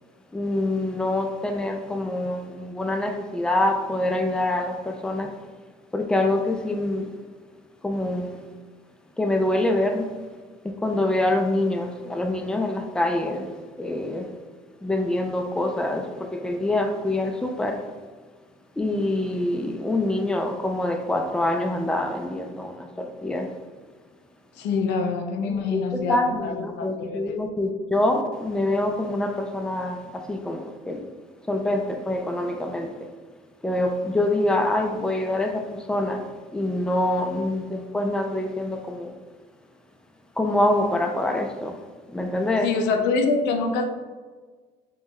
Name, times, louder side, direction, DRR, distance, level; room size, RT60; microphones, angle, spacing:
voice 1, 0.3-5.3 5.9-7.1 7.8-8.4 9.2-10.1 10.6-13.5 13.8-14.3 14.8-17.8 18.8-23.5 25.4-31.1 31.5-32.9 33.6-36.2 36.5-39.1 40.4-41.8 42.1-42.7, left 1 dB, 5° left, 0.4 m, -25 dB
voice 2, 24.6-27.4 42.6-43.8, left 4 dB, 90° left, 0.5 m, -25 dB
5.4 x 2.3 x 3.0 m
cardioid pair, 110°, 17 cm